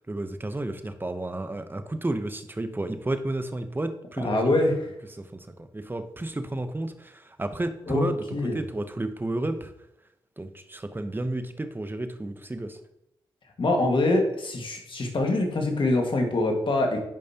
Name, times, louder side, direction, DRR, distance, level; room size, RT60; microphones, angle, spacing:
voice 1, 0.1-4.6 5.1-8.3 8.5-9.7 10.4-12.8, right 2 dB, 20° right, 9 dB, 0.9 m, -32 dB
voice 2, 4.2-4.7 7.9-8.6 13.6-17.0, left 2 dB, 55° left, 2 dB, 1.8 m, -24 dB
10.5 x 5.2 x 2.9 m, 0.82 s
supercardioid pair, 45°, 10 cm